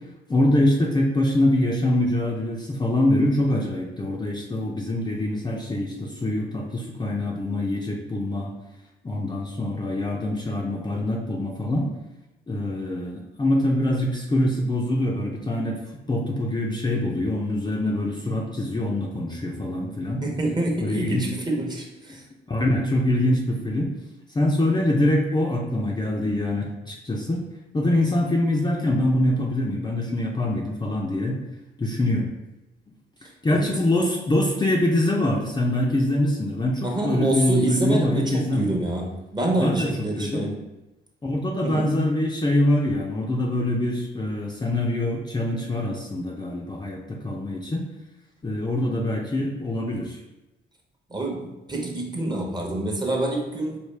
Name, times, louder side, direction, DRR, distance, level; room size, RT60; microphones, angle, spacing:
voice 1, 0.3-8.5 9.0-11.9 12.5-15.8 16.1-20.2 20.8-21.3 22.5-23.9 24.3-27.4 27.7-31.4 31.8-32.3 33.4-38.7 39.6-39.9 40.2-40.5 41.2-47.9 48.4-50.2, left 1 dB, 20° left, -2 dB, 0.6 m, -24 dB
voice 2, 20.2-22.2 33.5-33.7 36.8-40.5 41.6-41.9 51.1-53.8, right 2 dB, 20° right, 0 dB, 0.9 m, -27 dB
4.9 x 2.4 x 3.3 m, 1.0 s
cardioid pair, 90°, 20 cm